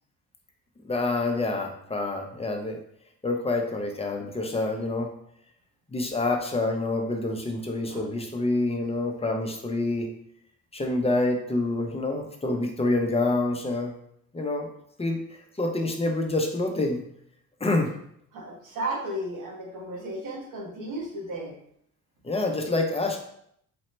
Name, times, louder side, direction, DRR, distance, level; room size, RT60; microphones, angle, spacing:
voice 1, 0.8-2.8 3.2-5.1 5.9-10.1 10.7-13.9 14.3-14.7 15.0-17.0 17.6-17.9 22.2-23.2, left 2 dB, 20° left, 2 dB, 0.7 m, -27 dB
voice 2, 18.3-21.5, right 1 dB, 90° right, -2 dB, 1.3 m, -34 dB
4.2 x 2.8 x 3.2 m, 0.70 s
cardioid pair, 90°, 30 cm